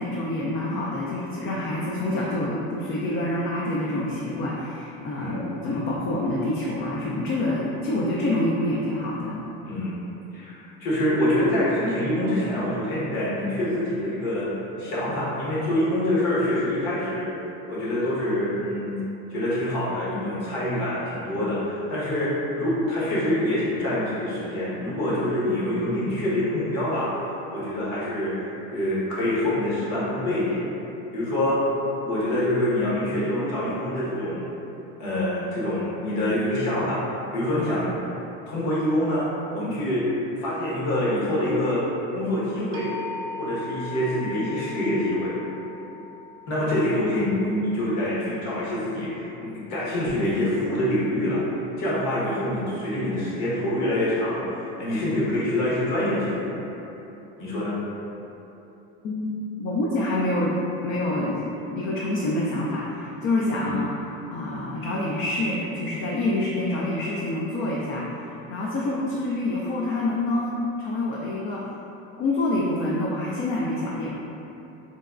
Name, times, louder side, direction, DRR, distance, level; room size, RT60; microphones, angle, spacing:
voice 1, 0.0-9.4 59.0-60.6 60.8-63.9 64.3-71.6 72.2-74.1, left 1 dB, 45° left, -4 dB, 0.4 m, -27 dB
voice 2, 5.1-5.5 9.6-10.0 10.3-17.3 17.7-19.0 19.3-30.7 31.1-31.6 32.0-34.4 35.0-37.0 37.3-37.9 38.5-39.3 39.5-40.1 40.4-42.9 43.4-45.4 46.5-51.4 51.8-56.6 57.4-57.8 63.5-63.8, left 1 dB, 65° left, -8 dB, 1.2 m, -25 dB
sound 1, 42.7-48.7, left 3 dB, 55° right, 0.5 m, -40 dB
3.9 x 2.2 x 2.4 m, 3.0 s
supercardioid pair, 110°, 30 cm